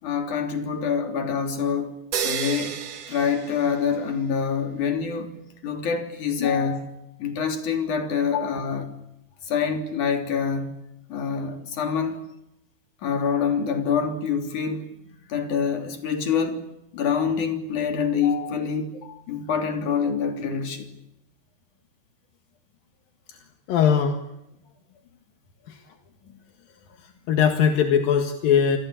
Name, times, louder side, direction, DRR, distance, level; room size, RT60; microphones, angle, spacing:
voice 1, 0.0-2.0 2.2-2.8 3.1-5.3 5.6-6.9 7.2-8.9 9.4-10.7 11.1-12.2 13.0-14.9 15.3-16.6 16.9-19.0 19.3-20.9 26.2-26.4, left 6 dB, 40° left, 4.0 m, -26 dB
sound 1, 2.1-4.3, right 8 dB, 55° right, 2.5 m, -31 dB
voice 2, 6.4-6.8 8.3-8.5 18.2-18.6 19.1-19.2 23.3-23.4 23.7-24.2 25.7-25.8 27.3-28.8, left 8 dB, 60° left, 2.6 m, -21 dB
29.0 x 21.5 x 8.8 m
omnidirectional pair, 5.9 m